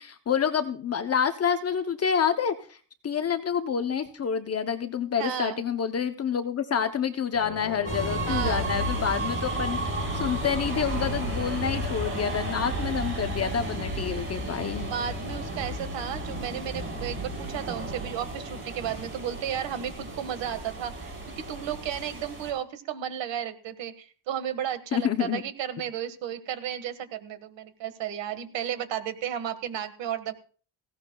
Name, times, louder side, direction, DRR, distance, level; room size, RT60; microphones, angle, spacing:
voice 1, 0.0-2.8 3.0-9.8 10.1-14.9 24.9-25.4, left 7 dB, 35° left, 8 dB, 0.7 m, -28 dB
voice 2, 5.2-5.6 8.3-8.7 14.9-30.3, right 9 dB, 75° right, 10 dB, 1.6 m, -33 dB
sound 1, 7.3-13.5, left 4 dB, 55° left, 5.1 m, -40 dB
sound 2, 7.9-22.5, right 2 dB, 25° right, 4.3 m, -33 dB
18.0 x 16.5 x 2.3 m, 0.42 s
cardioid pair, 145°, 45 cm